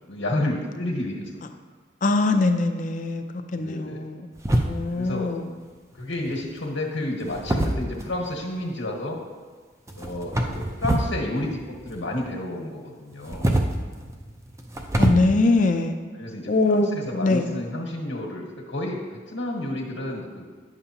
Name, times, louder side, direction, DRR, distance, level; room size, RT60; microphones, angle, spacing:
voice 1, 0.1-1.3 3.5-4.0 4.9-5.3 6.0-9.2 10.0-13.5 16.2-20.4, left 1 dB, 85° left, -1 dB, 1.3 m, -30 dB
voice 2, 2.0-3.2 3.5-4.3 4.7-5.5 15.0-16.0 16.5-17.5, left 3 dB, 40° left, 7 dB, 0.5 m, -22 dB
sound 1, 4.4-5.1 6.1-6.5 7.2-8.3 9.9-11.2 11.4-12.3 13.1-15.1, right 1 dB, 15° right, 0.5 m, -25 dB
9.7 x 6.9 x 2.9 m, 1.5 s
head